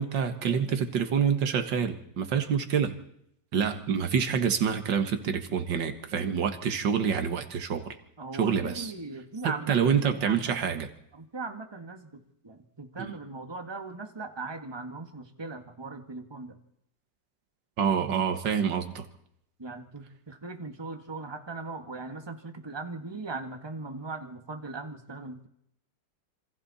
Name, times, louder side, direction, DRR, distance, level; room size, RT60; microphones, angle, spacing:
voice 1, 0.0-2.9 3.5-8.0 8.3-8.9 9.4-10.9 13.0-13.2 17.8-19.1, right 7 dB, 85° right, 8 dB, 2.2 m, -27 dB
voice 2, 8.2-10.7 11.1-12.1 12.4-16.6 19.6-25.5, right 3 dB, 15° right, 5 dB, 1.7 m, -39 dB
27.0 x 25.0 x 4.2 m, 0.76 s
omnidirectional pair, 1.9 m